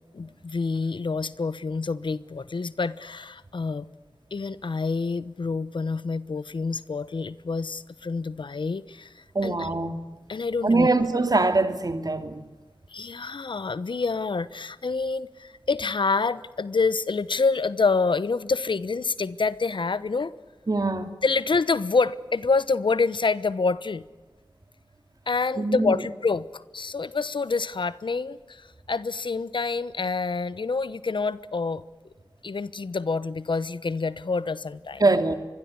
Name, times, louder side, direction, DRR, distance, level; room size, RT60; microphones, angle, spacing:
voice 1, 0.1-3.9 4.3-9.1 9.4-9.7 10.3-10.9 12.9-20.3 21.2-24.0 25.3-31.8 32.4-35.0, left 4 dB, 80° left, 1.0 m, -27 dB
voice 2, 9.3-10.0 10.6-12.4 20.7-21.1 25.6-26.0 35.0-35.3, right 3 dB, 50° right, 2.8 m, -23 dB
25.0 x 22.0 x 9.7 m
wide cardioid pair, 60°, 8 cm